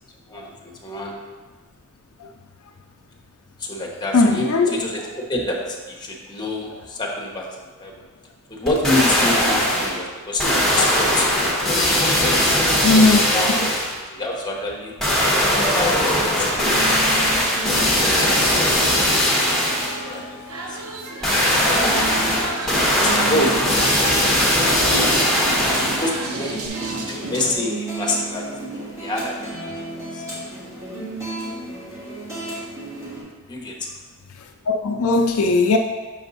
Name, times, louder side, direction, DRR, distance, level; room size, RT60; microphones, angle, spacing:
voice 1, 0.3-1.1 3.6-8.0 8.5-11.2 11.8-12.5 12.9-13.7 14.1-14.9 15.5-16.0 16.3-17.3 17.9-18.6 20.0-20.8 21.5-22.1 22.4-23.9 24.8-25.3 25.7-28.5 29.0-30.2 33.5-33.8, left 1 dB, 20° left, -1 dB, 1.0 m, -28 dB
voice 2, 4.1-4.7 10.8-10.9 12.8-13.2 34.7-35.8, left 3 dB, 70° left, 4 dB, 0.4 m, -17 dB
sound 1, 8.7-10.0 10.4-14.0 15.0-20.0 21.2-26.2 26.7-26.8, left 1 dB, ahead, 1.2 m, -19 dB
sound 2, 15.1-33.2, right 2 dB, 15° right, 2.0 m, -33 dB
sound 3, 17.4-27.5, right 3 dB, 75° right, 0.7 m, -33 dB
6.1 x 4.4 x 4.0 m, 1.3 s
head